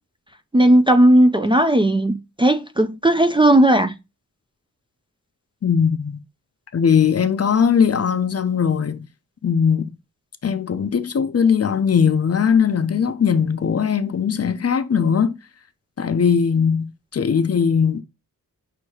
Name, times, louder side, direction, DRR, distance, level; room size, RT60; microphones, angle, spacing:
voice 1, 0.5-3.9, right 1 dB, 15° right, 0.4 m, -15 dB
voice 2, 5.6-6.2 6.7-9.1 9.4-9.9 10.4-15.3 16.0-18.0, left 7 dB, 45° left, 0.5 m, -19 dB
6.3 x 2.7 x 2.9 m
wide cardioid pair, 110°, 34 cm